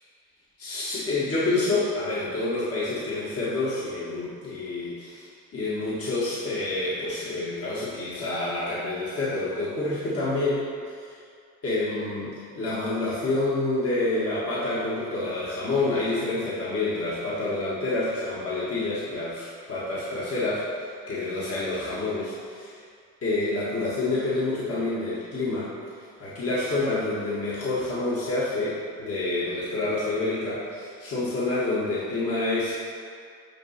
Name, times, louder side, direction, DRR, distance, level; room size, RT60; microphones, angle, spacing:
voice 1, 0.6-11.2 11.6-22.8 23.2-25.7 26.0-32.8, left 2 dB, 50° left, -9 dB, 1.7 m, -28 dB
8.8 x 3.1 x 5.7 m, 2.2 s
cardioid pair, 95°, 31 cm